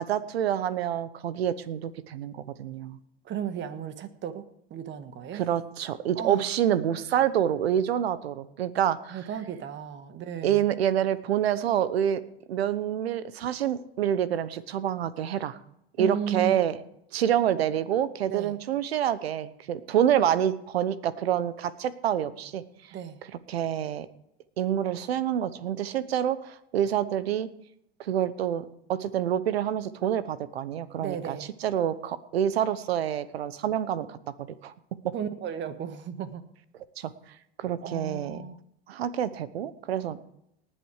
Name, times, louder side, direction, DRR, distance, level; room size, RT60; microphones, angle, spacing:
voice 1, 0.0-3.0 5.3-9.2 10.4-12.2 12.5-15.6 16.0-16.8 17.1-22.6 23.5-24.1 24.6-27.5 28.0-31.4 31.6-34.2 34.6-34.7 37.0-37.1 37.6-38.4 38.9-40.2, right 10 dB, 85° right, 16 dB, 1.0 m, -27 dB
voice 2, 3.2-4.4 4.7-5.4 6.1-6.4 9.1-10.6 16.0-16.5 18.3-18.6 22.9-23.2 31.0-31.5 35.1-36.5 37.8-38.6, right 8 dB, 40° right, 10 dB, 1.5 m, -35 dB
19.0 x 7.7 x 4.8 m, 0.77 s
hypercardioid pair, 105°, 30 cm